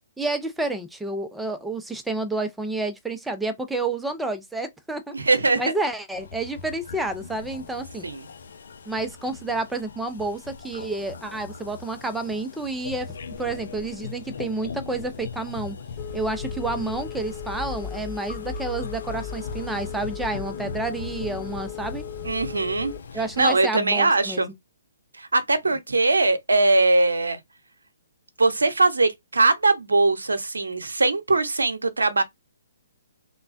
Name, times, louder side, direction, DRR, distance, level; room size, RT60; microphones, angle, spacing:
voice 1, 0.2-5.1 5.6-8.1 8.9-15.8 16.1-22.0 23.1-24.5, right 2 dB, 5° right, 0.5 m, -30 dB
voice 2, 5.1-5.6 8.0-8.2 22.2-22.9 23.4-24.5 25.2-27.4 28.4-32.2, right 3 dB, 85° right, 0.7 m, -21 dB
sound 1, 6.1-23.6, left 5 dB, 65° left, 0.5 m, -39 dB
Telephone, 16.0-23.0, left 7 dB, 25° left, 1.7 m, -36 dB
3.2 x 2.1 x 2.5 m
figure-of-eight pair, 135°, 0 cm